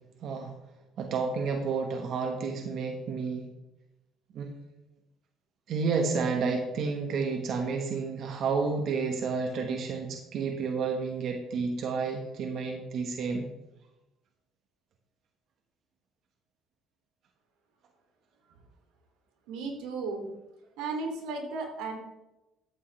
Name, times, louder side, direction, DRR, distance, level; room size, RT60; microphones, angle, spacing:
voice 1, 0.2-0.5 1.0-3.5 4.3-4.5 5.7-13.5, right 5 dB, 55° right, 3 dB, 1.4 m, -30 dB
voice 2, 19.5-20.3 20.8-22.0, right 3 dB, 85° right, 2 dB, 2.7 m, -34 dB
12.0 x 8.6 x 3.4 m, 0.95 s
cardioid pair, 115°, 0 cm